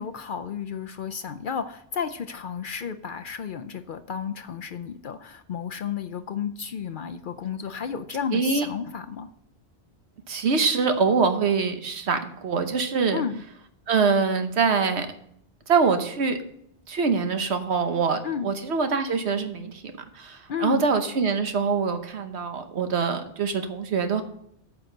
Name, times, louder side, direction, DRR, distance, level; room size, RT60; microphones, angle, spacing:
voice 1, 0.0-9.3 13.1-13.4 18.2-18.5 20.5-20.8, left 7 dB, 55° left, 8 dB, 0.6 m, -32 dB
voice 2, 8.3-8.7 10.3-13.2 13.9-15.1 15.7-16.4 16.9-19.8 20.1-24.2, right 5 dB, 70° right, 7 dB, 1.3 m, -24 dB
9.5 x 5.9 x 6.5 m, 0.70 s
omnidirectional pair, 1.2 m